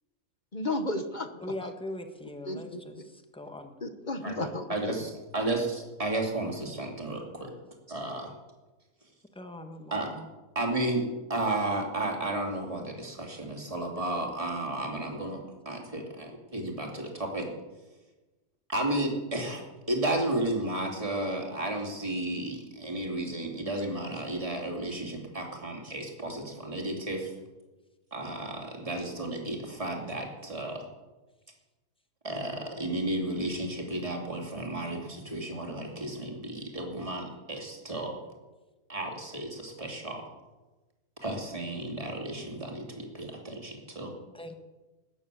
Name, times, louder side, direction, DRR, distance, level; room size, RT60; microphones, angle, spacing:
voice 1, 0.5-1.3 1.6-1.7 2.5-2.8 3.8-4.9, left 2 dB, 35° left, 8 dB, 1.1 m, -33 dB
voice 2, 1.4-2.9 3.3-3.7 9.3-10.3 44.3-44.5, left 1 dB, 5° left, 6 dB, 1.3 m, -40 dB
voice 3, 4.2-7.5 7.9-8.3 9.9-10.2 10.5-15.4 15.6-17.5 18.7-19.6 19.9-27.3 28.1-30.9 32.2-38.2 38.9-40.2 41.2-44.1, right 1 dB, 25° right, 1 dB, 2.9 m, -33 dB
20.0 x 9.8 x 7.0 m, 1.2 s
omnidirectional pair, 1.5 m